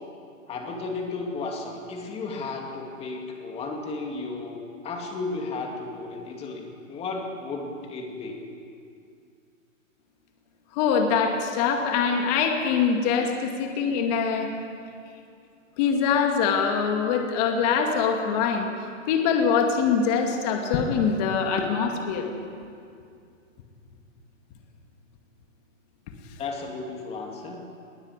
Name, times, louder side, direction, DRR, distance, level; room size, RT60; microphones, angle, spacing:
voice 1, 0.5-8.5 26.4-27.6, left 3 dB, 15° left, 2 dB, 2.5 m, -34 dB
voice 2, 10.7-14.5 15.8-18.7 19.1-22.3, left 6 dB, 30° left, 3 dB, 2.3 m, -23 dB
20.0 x 20.0 x 8.2 m, 2.4 s
hypercardioid pair, 160°, 39 cm